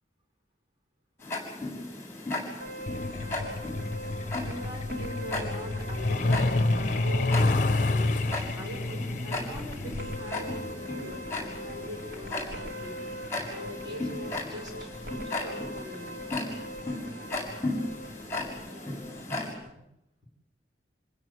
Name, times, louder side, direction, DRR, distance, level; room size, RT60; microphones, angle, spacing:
Tick-tock, 1.2-19.5, left 2 dB, 15° left, 6.8 m, -36 dB
sound 1, 2.6-19.7, equal, 50° right, 3.0 m, -42 dB
Truck, 2.9-15.2 16.4-16.6 16.9-17.1 17.5-17.8 18.1-18.2 18.7-18.8, left 2 dB, 40° left, 1.0 m, -30 dB
voice 1, 4.4-7.5 7.9-8.1 8.6-13.0 13.5-16.1, left 1 dB, 20° right, 0 dB, 5.7 m, -42 dB
28.5 x 16.0 x 9.4 m, 0.84 s
head